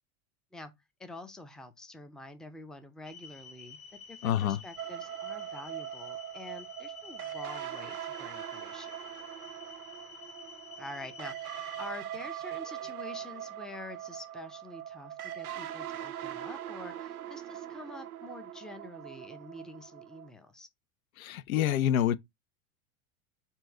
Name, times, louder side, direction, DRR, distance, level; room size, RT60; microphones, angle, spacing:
voice 1, 1.0-3.8 4.1-9.0 10.8-20.7, left 2 dB, ahead, 0.5 m, -47 dB
sound 1, 3.0-11.9, left 5 dB, 15° left, 0.8 m, -50 dB
voice 2, 4.2-4.6 21.2-22.2, left 10 dB, 80° left, 0.5 m, -27 dB
sound 2, 4.8-20.3, right 11 dB, 90° right, 0.6 m, -41 dB
4.4 x 2.7 x 4.4 m
hypercardioid pair, 90°, 42 cm